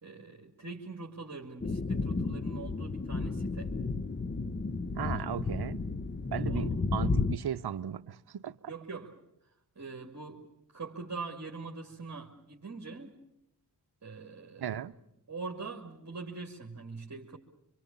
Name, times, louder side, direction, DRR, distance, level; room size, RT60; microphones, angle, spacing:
voice 1, 0.0-3.7 6.5-6.7 8.7-9.1 9.8-10.5 10.7-13.1 14.0-14.8 15.3-17.4, right 4 dB, 40° right, 2.6 m, -43 dB
sound 1, 1.6-7.4, left 3 dB, 25° left, 1.0 m, -32 dB
voice 2, 5.0-5.8 6.3-8.7 14.6-14.9, right 9 dB, 65° right, 0.9 m, -36 dB
25.0 x 24.5 x 7.2 m
cardioid pair, 40°, 41 cm